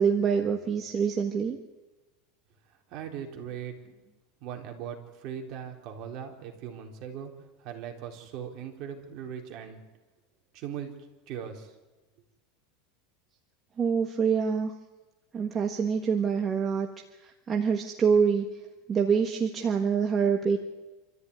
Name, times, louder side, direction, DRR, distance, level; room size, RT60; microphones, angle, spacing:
voice 1, 0.0-1.6 13.8-14.7 15.3-16.9 17.2-18.5 18.9-20.6, right 6 dB, 20° right, 3 dB, 1.5 m, -25 dB
voice 2, 2.7-4.0 4.4-7.3 7.6-9.8 10.5-10.9 11.3-11.7, right 8 dB, 40° right, 3 dB, 3.9 m, -39 dB
26.5 x 14.0 x 9.8 m, 1.1 s
supercardioid pair, 165°, 0 cm